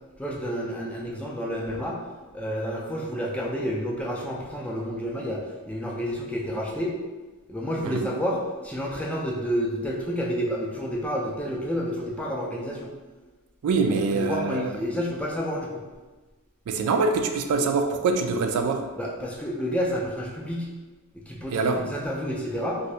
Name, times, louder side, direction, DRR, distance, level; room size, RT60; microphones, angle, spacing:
voice 1, 0.2-2.0 2.3-7.0 7.5-12.9 13.9-15.8 19.0-20.7 21.3-22.8, equal, 5° left, -3 dB, 0.3 m, -30 dB
voice 2, 13.6-14.7 16.7-18.8 21.5-21.8, right 4 dB, 80° right, 5 dB, 0.3 m, -24 dB
2.7 x 2.6 x 3.2 m, 1.2 s
head